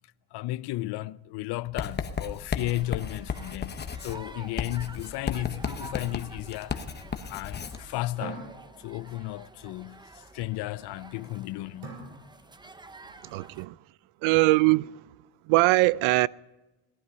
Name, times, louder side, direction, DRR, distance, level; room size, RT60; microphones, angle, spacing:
voice 1, 0.3-6.8 7.3-8.4 8.8-12.0, left 17 dB, 60° left, 0.5 m, -34 dB
Writing, 1.8-7.8, left 6 dB, 20° left, 0.9 m, -34 dB
sound 1, 2.7-13.7, right 3 dB, 10° right, 0.5 m, -50 dB
sound 2, 4.5-6.2 8.2-9.6 11.8-12.9, right 3 dB, 55° right, 5.7 m, -45 dB
voice 2, 13.2-13.7 14.2-15.0 15.5-16.3, right 21 dB, 85° right, 0.5 m, -21 dB
18.0 x 12.5 x 5.6 m
cardioid pair, 150°, 46 cm